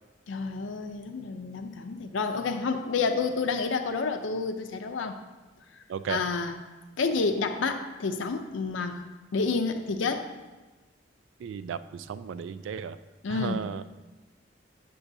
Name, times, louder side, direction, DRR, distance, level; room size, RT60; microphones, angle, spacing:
voice 1, 0.3-5.2 6.1-6.6 7.0-9.0 9.3-10.3 13.2-13.6, left 4 dB, 90° left, 6 dB, 0.5 m, -29 dB
voice 2, 5.9-6.2 11.4-13.0 13.3-13.8, right 7 dB, 85° right, 14 dB, 0.3 m, -34 dB
8.4 x 6.9 x 2.6 m, 1.2 s
head